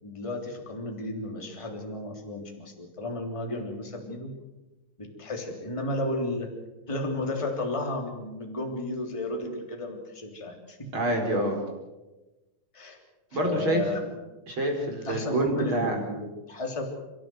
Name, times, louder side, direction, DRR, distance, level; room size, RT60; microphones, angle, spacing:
voice 1, 0.0-4.3 5.0-6.5 6.9-10.8 12.7-13.0 13.4-14.1 15.0-16.9, left 2 dB, 10° left, 2 dB, 3.0 m, -33 dB
voice 2, 10.9-11.6 13.3-13.8 14.5-15.9, right 1 dB, 35° right, 1 dB, 5.1 m, -27 dB
30.0 x 14.0 x 7.9 m, 1.1 s
omnidirectional pair, 3.9 m